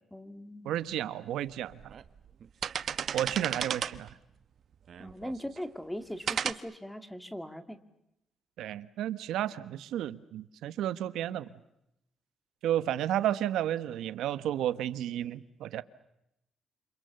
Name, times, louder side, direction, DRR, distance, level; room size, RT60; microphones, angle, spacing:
voice 1, 0.1-0.8 5.0-7.8, equal, 5° left, 9 dB, 2.3 m, -40 dB
voice 2, 0.6-1.9 3.1-4.1 8.6-11.5 12.6-15.8, right 11 dB, 85° right, 14 dB, 1.2 m, -32 dB
sound 1, 1.0-1.1 1.7-2.1 2.4-4.1 4.9-5.6 6.3-6.5, right 8 dB, 60° right, 1.2 m, -34 dB
29.0 x 27.0 x 7.0 m, 0.83 s
cardioid pair, 90°, 0 cm